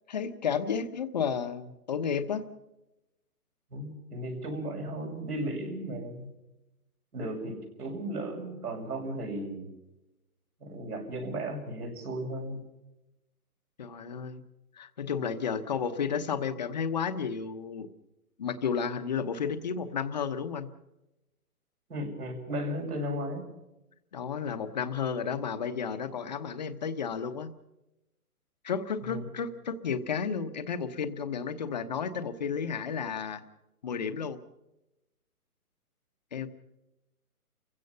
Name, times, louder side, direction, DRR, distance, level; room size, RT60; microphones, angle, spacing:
voice 1, 0.1-2.5 13.8-14.4 14.8-17.9 18.4-20.7 24.1-27.5 28.6-33.4 33.8-34.4 36.3-36.5, left 6 dB, 30° left, 10 dB, 1.0 m, -32 dB
voice 2, 3.7-6.3 7.1-9.7 10.6-12.6 21.9-23.4 29.0-29.2, right 1 dB, 80° right, 1 dB, 7.1 m, -35 dB
29.0 x 16.5 x 5.6 m, 0.95 s
hypercardioid pair, 170°, 45 cm